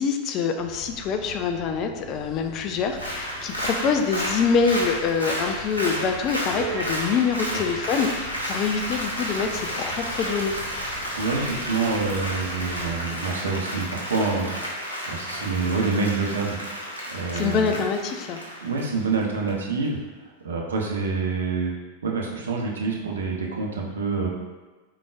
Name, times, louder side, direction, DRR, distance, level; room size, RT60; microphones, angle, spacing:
voice 1, 0.0-10.5 17.3-18.4, left 6 dB, 35° left, 5 dB, 0.4 m, -25 dB
sound 1, 0.6-13.0, right 2 dB, 15° right, 1.3 m, -41 dB
Applause, 2.9-19.5 19.8-19.9, equal, 90° left, 0.7 m, -32 dB
voice 2, 11.1-16.6 17.1-17.8 18.2-18.3 18.6-20.0 20.4-21.7 22.0-24.3, right 4 dB, 65° right, -1 dB, 0.7 m, -27 dB
4.7 x 3.8 x 2.3 m, 1.2 s
figure-of-eight pair, 90°, 0 cm